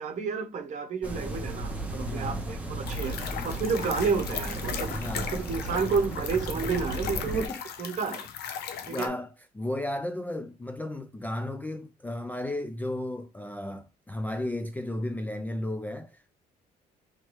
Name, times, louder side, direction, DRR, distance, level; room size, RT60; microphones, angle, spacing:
voice 1, 0.0-7.5 7.8-8.3 8.9-9.1, right 5 dB, 45° right, 0.8 m, -31 dB
sound 1, 1.0-7.5, right 1 dB, 10° right, 0.8 m, -35 dB
voice 2, 2.0-2.6 4.9-5.5 7.2-7.6 8.6-16.4, left 1 dB, 10° left, 0.3 m, -34 dB
sound 2, 2.8-9.1, left 8 dB, 70° left, 0.5 m, -37 dB
3.2 x 3.0 x 3.0 m
cardioid pair, 110°, 17 cm